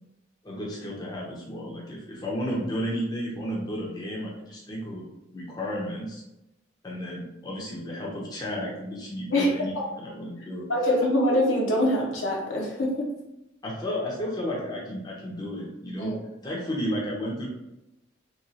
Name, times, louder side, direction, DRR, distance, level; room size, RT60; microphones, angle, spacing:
voice 1, 0.4-5.0 5.3-6.2 6.8-10.7 13.6-16.1 16.4-17.5, equal, 20° left, -4 dB, 0.6 m, -33 dB
voice 2, 9.3-9.8 10.7-13.1 16.0-16.1, left 1 dB, 75° left, -2 dB, 0.9 m, -24 dB
3.0 x 2.9 x 2.7 m, 0.90 s
head